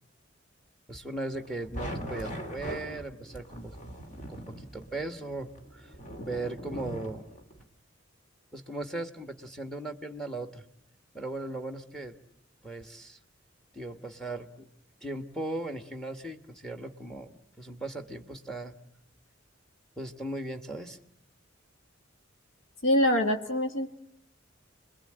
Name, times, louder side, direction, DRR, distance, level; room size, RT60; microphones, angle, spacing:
voice 1, 0.9-3.7 4.1-5.9 6.2-7.3 8.5-10.6 11.1-12.2 12.6-13.2 13.7-14.7 15.0-18.8 20.0-21.0, right 2 dB, 5° left, 7 dB, 1.3 m, -38 dB
sound 1, 1.3-7.6, equal, 40° left, 2.7 m, -41 dB
voice 2, 22.8-24.0, left 1 dB, 90° left, 5 dB, 1.6 m, -25 dB
29.0 x 21.5 x 8.8 m, 0.77 s
head